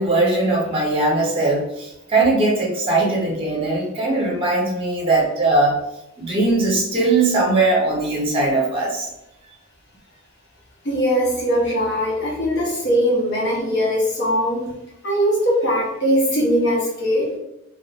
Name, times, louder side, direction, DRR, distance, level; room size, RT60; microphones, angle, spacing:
voice 1, 0.0-5.8 6.2-9.1, right 2 dB, 25° right, -3 dB, 0.8 m, -20 dB
voice 2, 10.8-14.7 15.0-17.3, equal, 55° left, -4 dB, 0.9 m, -20 dB
2.4 x 2.2 x 2.8 m, 0.86 s
head